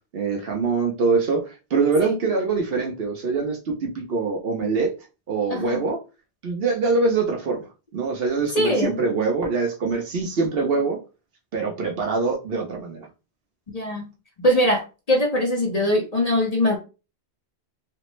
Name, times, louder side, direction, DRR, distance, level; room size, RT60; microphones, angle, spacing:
voice 1, 0.1-1.4 1.7-4.9 5.3-6.0 6.4-7.7 7.9-11.0 11.5-13.1, right 4 dB, 60° right, 0.9 m, -24 dB
voice 2, 5.5-5.8 8.5-9.0 13.7-14.1 14.4-16.8, left 1 dB, 40° left, 0.7 m, -22 dB
3.3 x 2.0 x 3.0 m
omnidirectional pair, 1.1 m